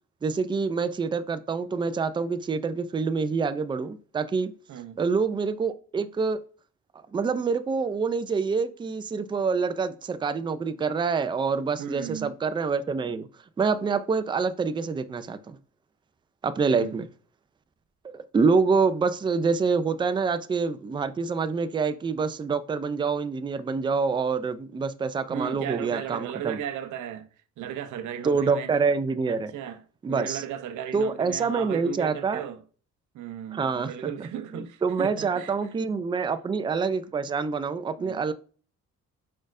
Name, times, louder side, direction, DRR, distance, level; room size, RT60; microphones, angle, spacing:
voice 1, 0.2-4.5 5.0-6.4 7.1-13.3 13.6-15.6 16.4-17.0 18.1-26.6 28.2-29.5 30.0-30.4 30.9-32.4 33.5-34.1 34.5-38.3, right 5 dB, 15° right, 0.3 m, -26 dB
voice 2, 4.7-5.0 11.8-12.3 16.7-17.0 25.3-27.3 27.6-28.8 29.3-29.8 30.1-32.6 33.1-35.6 38.0-38.2, right 9 dB, 75° right, 0.6 m, -35 dB
4.8 x 4.2 x 2.5 m
cardioid pair, 90°, 30 cm